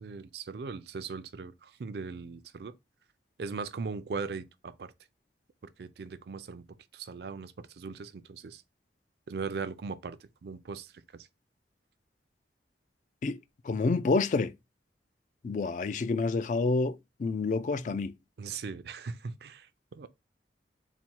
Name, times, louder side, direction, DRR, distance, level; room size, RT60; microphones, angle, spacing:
voice 1, 0.0-2.7 3.4-4.9 5.8-6.6 6.9-8.6 9.3-11.3 18.4-20.1, right 4 dB, 65° right, 0.4 m, -39 dB
voice 2, 13.7-14.5 15.4-18.1, left 3 dB, 45° left, 0.3 m, -28 dB
4.1 x 2.1 x 4.4 m
head